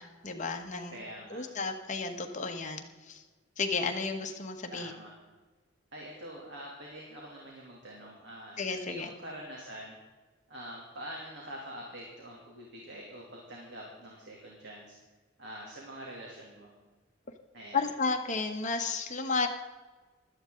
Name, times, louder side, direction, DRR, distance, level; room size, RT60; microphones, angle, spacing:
voice 1, 0.0-1.0 1.3-3.2 3.6-4.9 8.6-9.1 17.7-19.5, left 4 dB, 40° left, 4 dB, 1.4 m, -33 dB
voice 2, 0.9-1.4 4.7-5.1 5.9-10.0 10.5-14.9 15.4-16.7 17.5-17.9, equal, 65° right, -2 dB, 2.9 m, -45 dB
16.0 x 13.0 x 3.9 m, 1.3 s
head